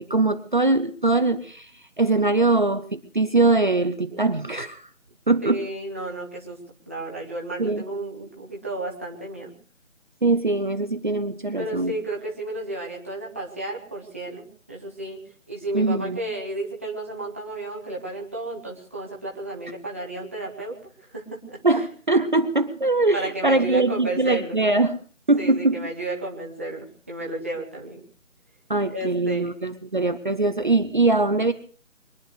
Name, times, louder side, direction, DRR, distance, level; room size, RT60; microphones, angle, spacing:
voice 1, 0.0-1.7 2.0-4.9 5.3-5.6 7.6-7.8 10.2-12.0 15.7-16.2 21.6-25.0 25.3-25.8 28.7-31.5, right 2 dB, 40° right, 8 dB, 0.8 m, -22 dB
voice 2, 5.4-6.6 6.9-9.5 11.6-15.2 15.5-21.8 23.1-24.6 25.4-28.0 28.9-29.5, right 2 dB, 10° right, -2 dB, 1.0 m, -33 dB
23.0 x 9.9 x 6.4 m, 0.43 s
figure-of-eight pair, 160°, 39 cm